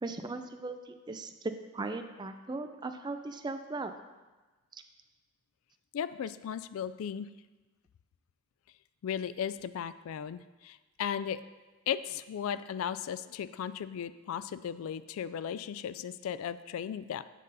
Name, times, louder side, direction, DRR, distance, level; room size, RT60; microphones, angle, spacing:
voice 1, 0.0-3.9 4.7-4.8, right 3 dB, 20° right, 7 dB, 0.4 m, -38 dB
voice 2, 5.9-7.3 9.0-11.4 11.9-17.2, left 8 dB, 80° left, 16 dB, 0.3 m, -36 dB
7.4 x 5.4 x 4.0 m, 1.2 s
head